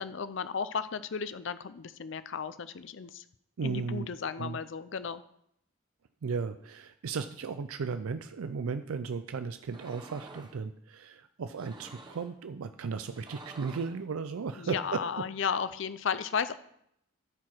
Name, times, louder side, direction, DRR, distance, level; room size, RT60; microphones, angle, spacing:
voice 1, 0.0-3.2 3.6-5.2 14.6-16.5, left 6 dB, 60° left, 13 dB, 0.5 m, -34 dB
voice 2, 3.6-4.1 4.4-4.6 6.2-15.0, right 5 dB, 90° right, 9 dB, 0.5 m, -35 dB
sound 1, 9.6-10.6 11.5-12.4 13.0-14.0, right 2 dB, 20° right, 0.9 m, -50 dB
14.0 x 4.8 x 4.5 m, 0.72 s
head